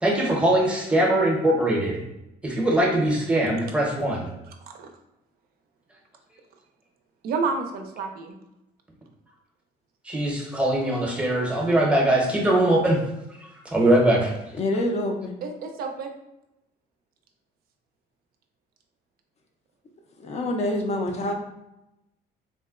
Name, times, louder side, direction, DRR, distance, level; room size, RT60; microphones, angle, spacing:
voice 1, 0.0-2.0 2.4-4.3 10.1-13.0 13.7-14.3, right 1 dB, 5° right, -1 dB, 0.7 m, -21 dB
voice 2, 4.5-4.9 7.2-8.3 15.4-16.1, right 4 dB, 65° right, 5 dB, 0.4 m, -30 dB
voice 3, 14.6-15.3 20.2-21.3, left 1 dB, 40° left, 3 dB, 0.4 m, -26 dB
3.6 x 2.1 x 2.3 m, 0.89 s
cardioid pair, 110°, 17 cm